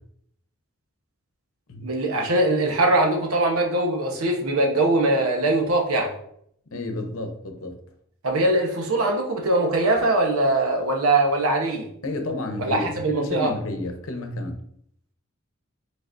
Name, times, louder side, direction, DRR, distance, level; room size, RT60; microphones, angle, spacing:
voice 1, 1.8-6.1 8.2-11.9 12.6-13.5, right 2 dB, 80° right, 2 dB, 1.0 m, -22 dB
voice 2, 6.7-7.8 12.0-14.6, left 2 dB, 70° left, 5 dB, 0.8 m, -31 dB
5.1 x 3.9 x 2.6 m, 0.68 s
head